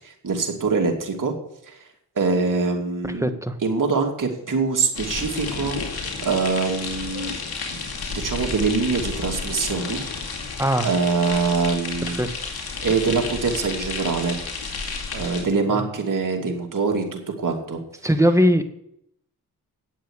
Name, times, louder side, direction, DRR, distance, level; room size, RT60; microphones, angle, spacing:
voice 1, 0.0-1.3 1.7-1.8 2.2-3.3 3.6-7.3 8.1-10.0 10.8-12.2 12.8-14.4 15.1-17.8, right 4 dB, 55° right, 2 dB, 2.7 m, -24 dB
voice 2, 3.0-3.5 10.6-10.9 12.1-12.3 15.7-15.8 18.0-18.6, equal, 10° right, 8 dB, 1.5 m, -20 dB
sound 1, 4.9-15.4, left 4 dB, 70° left, 2.5 m, -31 dB
9.3 x 7.5 x 8.3 m, 0.75 s
cardioid pair, 50°, 39 cm